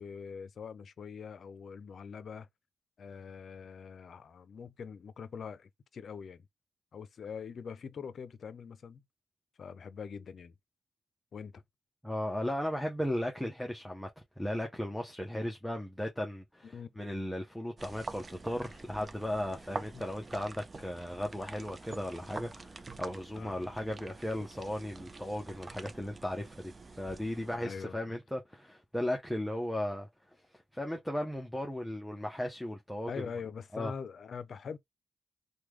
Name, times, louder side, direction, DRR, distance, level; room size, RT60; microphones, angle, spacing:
voice 1, 0.0-2.5 3.0-6.5 6.9-9.0 9.6-10.5 11.3-11.6 16.6-17.0 19.9-20.0 23.4-23.7 27.5-28.2 33.1-34.8, left 6 dB, 65° left, 0.5 m, -43 dB
voice 2, 12.0-14.1 14.4-26.7 27.0-30.1 30.5-33.3 33.7-33.9, left 1 dB, 5° left, 0.6 m, -36 dB
sound 1, 17.8-27.6, right 3 dB, 35° right, 0.4 m, -46 dB
3.3 x 2.2 x 3.0 m
cardioid pair, 80°, 0 cm